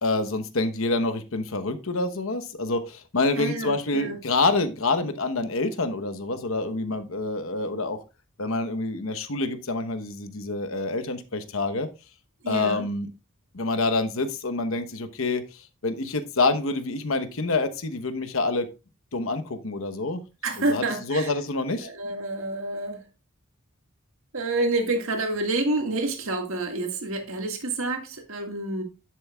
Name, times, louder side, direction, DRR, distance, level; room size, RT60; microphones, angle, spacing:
voice 1, 0.0-8.0 8.4-11.9 12.5-13.1 13.5-15.4 15.8-18.7 19.1-20.2 20.7-21.9, left 3 dB, 65° left, 1.0 m, -27 dB
voice 2, 3.4-4.2 12.4-12.8 20.4-21.3 21.8-23.1 24.3-28.8, right 2 dB, 70° right, 1.9 m, -28 dB
10.5 x 7.6 x 2.3 m
head